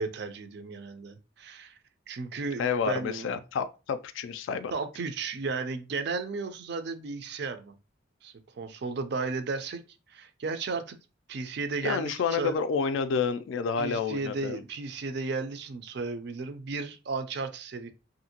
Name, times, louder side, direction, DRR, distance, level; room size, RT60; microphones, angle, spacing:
voice 1, 0.0-1.8 2.1-3.3 4.7-7.7 8.2-9.8 10.1-11.0 11.3-12.5 13.8-17.9, right 4 dB, 55° right, 0.4 m, -34 dB
voice 2, 2.6-4.7 11.8-14.6, left 5 dB, 70° left, 0.3 m, -29 dB
2.8 x 2.6 x 2.8 m
head